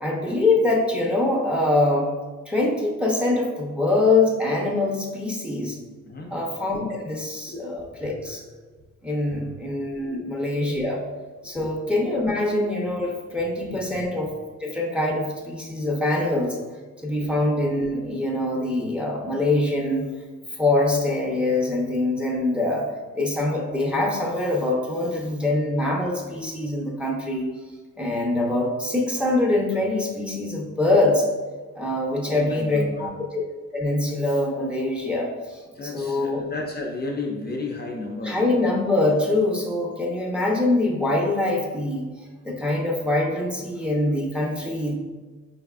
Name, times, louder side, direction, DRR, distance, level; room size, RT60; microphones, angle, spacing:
voice 1, 0.0-2.1 2.5-5.8 6.3-8.4 9.0-11.0 11.4-14.3 14.6-16.6 17.0-20.1 20.6-22.9 23.2-27.5 28.0-31.3 31.7-33.1 33.7-35.6 35.9-36.4 38.2-42.1 42.4-44.9, left 2 dB, 5° right, -1 dB, 0.7 m, -24 dB
voice 2, 11.4-11.8 13.7-14.0 17.1-17.3 32.2-33.2 35.7-38.6, left 2 dB, 35° left, 0 dB, 0.6 m, -33 dB
4.5 x 3.4 x 2.4 m, 1.4 s
cardioid pair, 90°, 30 cm